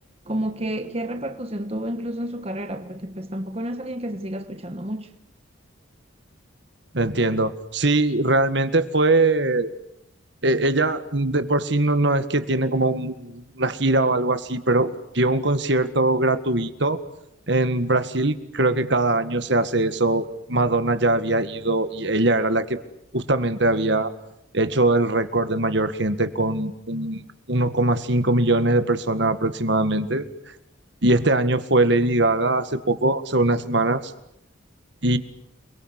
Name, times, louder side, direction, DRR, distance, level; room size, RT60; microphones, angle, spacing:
voice 1, 0.3-5.1, right 1 dB, 30° right, 1.4 m, -30 dB
voice 2, 6.9-9.7 10.4-17.0 17.5-22.8 23.1-24.1 24.5-30.3 31.0-34.1 35.0-35.2, right 2 dB, 60° right, 1.9 m, -21 dB
29.5 x 22.5 x 8.3 m
head